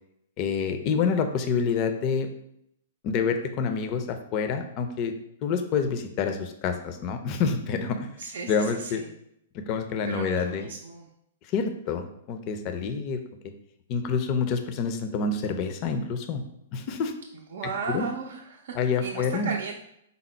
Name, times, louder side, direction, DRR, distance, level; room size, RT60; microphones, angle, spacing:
voice 1, 0.4-2.3 3.0-5.1 5.4-8.1 8.5-9.0 9.5-10.7 11.5-13.2 13.9-16.4 16.7-17.1 17.9-18.1 18.7-19.5, left 5 dB, 40° left, 7 dB, 0.5 m, -27 dB
voice 2, 8.2-9.1 10.1-11.1 17.3-19.8, right 5 dB, 70° right, 0 dB, 0.5 m, -35 dB
4.0 x 2.0 x 4.3 m, 0.76 s
hypercardioid pair, 120°, 0 cm